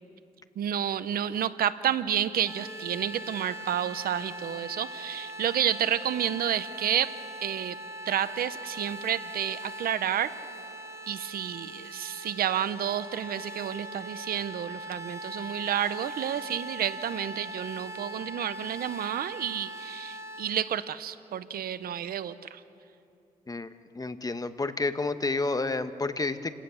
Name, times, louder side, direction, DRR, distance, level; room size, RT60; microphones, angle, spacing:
voice 1, 0.6-7.1 7.4-7.8 8.1-10.3 11.1-22.6, right 10 dB, 90° right, 14 dB, 0.7 m, -30 dB
sound 1, 2.5-20.4, right 1 dB, 20° right, 4.2 m, -41 dB
voice 2, 24.0-26.5, left 3 dB, 25° left, 11 dB, 1.0 m, -30 dB
29.0 x 17.5 x 7.0 m, 2.7 s
cardioid pair, 90°, 15 cm